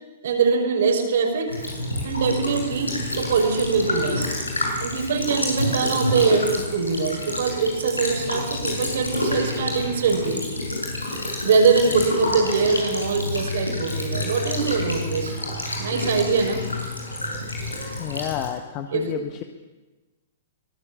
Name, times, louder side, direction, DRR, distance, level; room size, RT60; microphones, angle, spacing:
voice 1, 0.2-1.5 2.0-4.3 4.8-10.4 11.4-15.4 15.8-16.6 18.9-19.1, right 5 dB, 60° right, 4 dB, 5.5 m, -22 dB
Child speech kid speaking / Bird vocalization bird call bird song / Stream, 1.5-18.5, left 1 dB, 85° left, 6.6 m, -28 dB
voice 2, 18.0-19.4, left 10 dB, 35° left, 6 dB, 1.5 m, -30 dB
24.5 x 19.0 x 7.1 m, 1.2 s
figure-of-eight pair, 110°, 0 cm